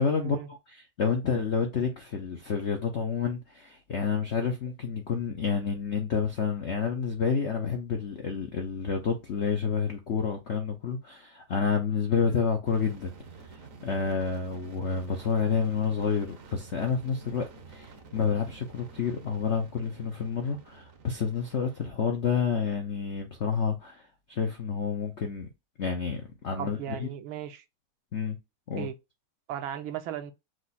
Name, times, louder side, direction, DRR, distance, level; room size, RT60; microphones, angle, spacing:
voice 1, 0.0-13.1 13.5-24.0 24.3-25.5 25.8-27.1 28.1-28.4 28.7-28.9, left 6 dB, 80° left, 0.6 m, -29 dB
sound 1, 12.7-21.8, right 4 dB, 55° right, 0.9 m, -50 dB
voice 2, 26.6-27.6 28.8-28.9 29.5-30.3, right 10 dB, 75° right, 1.5 m, -36 dB
4.8 x 2.3 x 4.1 m
omnidirectional pair, 2.3 m